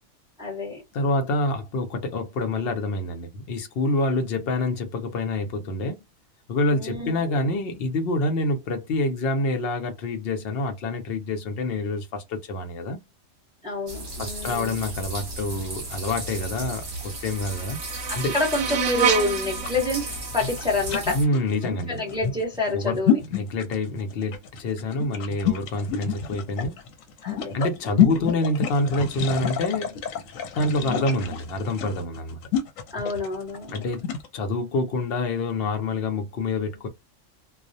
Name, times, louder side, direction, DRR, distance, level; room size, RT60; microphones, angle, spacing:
voice 1, 0.4-0.8 6.7-7.4 13.6-14.9 18.1-20.1 20.3-21.2 21.6-23.2 27.2-27.6 27.8-28.3 30.8-31.2 32.9-33.8, left 2 dB, 5° right, 0.8 m, -28 dB
voice 2, 0.9-6.0 6.5-13.0 14.2-17.8 18.1-18.3 21.1-22.0 22.7-23.0 23.3-26.8 27.5-30.0 30.5-32.4 33.7-34.1 34.3-36.9, left 2 dB, 60° left, 0.7 m, -27 dB
sound 1, 13.9-21.2, right 1 dB, 45° right, 1.0 m, -35 dB
sound 2, 16.8-21.8, right 8 dB, 70° right, 0.9 m, -30 dB
sound 3, 19.5-34.3, left 9 dB, 80° left, 1.0 m, -28 dB
2.3 x 2.0 x 2.6 m
omnidirectional pair, 1.3 m